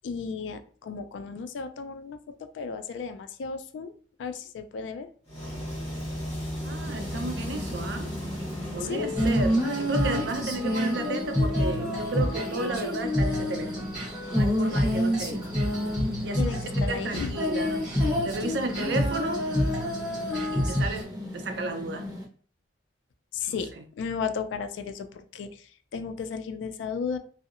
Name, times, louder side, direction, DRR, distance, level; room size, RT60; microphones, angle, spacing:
voice 1, 0.0-2.2 2.5-3.9 4.2-5.1 8.9-9.3 14.3-14.4 14.7-14.8 16.4-17.4 23.3-25.5 25.9-27.2, left 5 dB, 85° left, 0.3 m, -34 dB
sound 1, 5.3-10.6, equal, 35° left, 1.2 m, -36 dB
voice 2, 6.6-8.1 8.7-13.9 14.3-15.4 16.2-19.4 20.5-22.1 23.5-23.8, right 2 dB, 70° right, 0.5 m, -33 dB
sound 2, 6.8-22.3, equal, 20° right, 0.5 m, -39 dB
Female singing, 9.2-21.0, equal, 5° right, 1.1 m, -27 dB
2.6 x 2.0 x 2.4 m
head